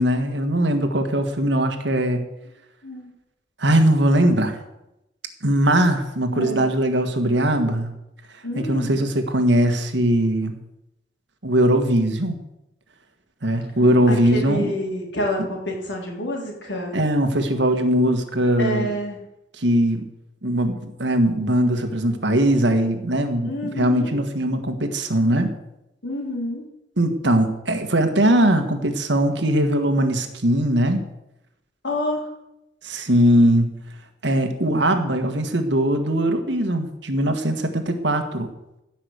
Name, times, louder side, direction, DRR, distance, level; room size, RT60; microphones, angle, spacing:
voice 1, 0.0-2.2 3.6-4.6 5.4-7.9 8.6-10.6 11.4-12.4 13.4-14.7 15.4-15.5 16.9-18.9 19.6-20.0 20.4-25.5 27.0-31.0 32.8-33.7 34.2-38.5, right 1 dB, 75° right, 6 dB, 1.7 m, -20 dB
voice 2, 6.3-6.6 8.4-9.0 14.1-17.0 18.6-19.2 23.4-24.2 26.0-26.6 31.8-32.2, left 1 dB, 80° left, 0 dB, 3.8 m, -28 dB
15.5 x 5.9 x 8.2 m, 0.88 s
head